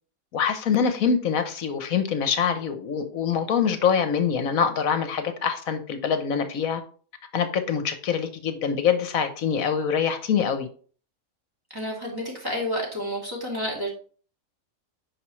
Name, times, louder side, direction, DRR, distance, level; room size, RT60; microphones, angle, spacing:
voice 1, 0.3-6.8 7.3-10.7, left 7 dB, 65° left, 9 dB, 1.3 m, -24 dB
voice 2, 11.7-13.9, equal, 15° right, -3 dB, 2.8 m, -30 dB
9.4 x 5.5 x 3.2 m, 0.43 s
omnidirectional pair, 1.6 m